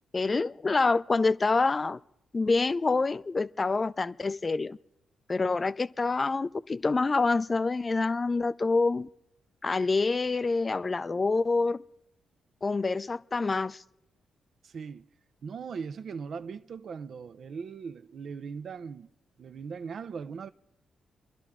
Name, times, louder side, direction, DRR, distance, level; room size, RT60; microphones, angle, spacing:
voice 1, 0.1-2.0 2.3-4.8 5.3-9.1 9.6-11.8 12.6-13.8, left 3 dB, 35° left, 0.4 m, -26 dB
voice 2, 14.6-15.1 15.4-19.1 19.4-20.5, right 6 dB, 60° right, 0.5 m, -39 dB
27.5 x 11.5 x 3.6 m
hypercardioid pair, 45°, 0 cm